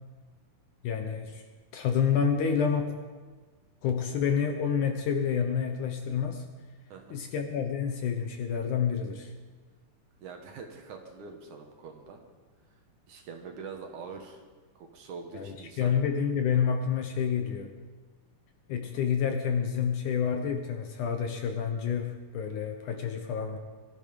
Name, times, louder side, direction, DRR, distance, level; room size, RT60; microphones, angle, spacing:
voice 1, 0.8-1.4 1.7-2.9 3.8-6.4 7.1-9.3 15.3-17.7 18.7-23.6, left 7 dB, 70° left, 5 dB, 2.1 m, -28 dB
voice 2, 6.9-7.2 10.2-12.2 13.1-14.4 14.8-16.0, right 5 dB, 60° right, 4 dB, 2.5 m, -44 dB
21.0 x 13.0 x 5.2 m, 1.4 s
omnidirectional pair, 4.3 m